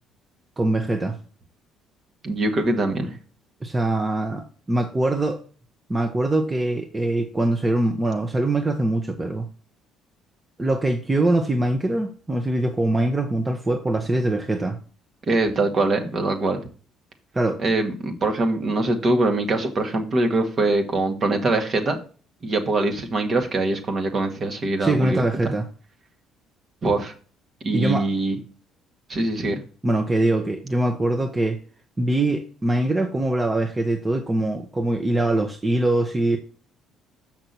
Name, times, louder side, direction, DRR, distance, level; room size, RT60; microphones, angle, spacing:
voice 1, 0.6-1.2 3.6-5.4 5.9-9.5 10.6-14.8 17.3-17.6 24.8-25.7 27.7-28.1 29.8-31.6 32.0-36.4, right 2 dB, 20° right, 1.1 m, -23 dB
voice 2, 2.2-3.1 15.3-16.6 17.6-22.0 22.4-25.5 26.8-27.1 27.6-28.4 29.1-29.6, right 2 dB, 45° right, 1.8 m, -23 dB
6.6 x 6.0 x 4.4 m
hypercardioid pair, 60°, 0 cm